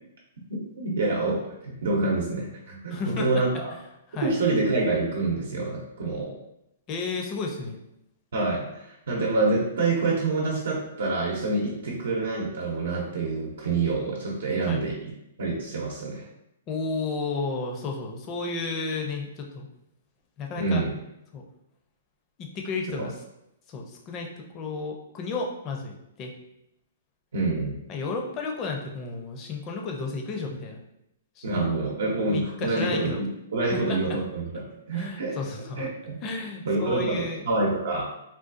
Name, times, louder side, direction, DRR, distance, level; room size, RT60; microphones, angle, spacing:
voice 1, 0.8-3.7 4.2-6.3 8.3-15.1 15.4-16.3 20.5-20.9 27.3-27.8 31.4-34.6 34.9-35.4 35.8-36.1 36.6-38.0, right 3 dB, 80° right, -3 dB, 0.7 m, -27 dB
voice 2, 2.9-3.3 4.1-4.3 6.9-7.8 14.7-14.8 16.7-19.7 20.4-20.8 21.3-21.4 22.4-23.1 23.7-24.3 24.5-26.3 27.9-30.8 31.4-31.5 32.2-33.2 33.7-34.0 34.9-35.9 36.2-37.4, left 4 dB, 25° left, 2 dB, 0.5 m, -32 dB
3.7 x 2.3 x 2.5 m, 0.84 s
hypercardioid pair, 150°, 0 cm